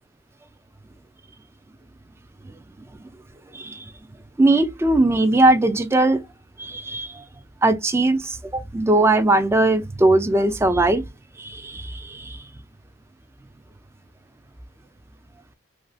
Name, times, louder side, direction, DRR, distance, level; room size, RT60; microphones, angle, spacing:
voice 1, 3.5-3.9 4.4-6.2 6.6-7.2 7.6-11.0 11.4-12.4, right 2 dB, 15° right, 0.3 m, -19 dB
2.5 x 2.4 x 3.3 m
head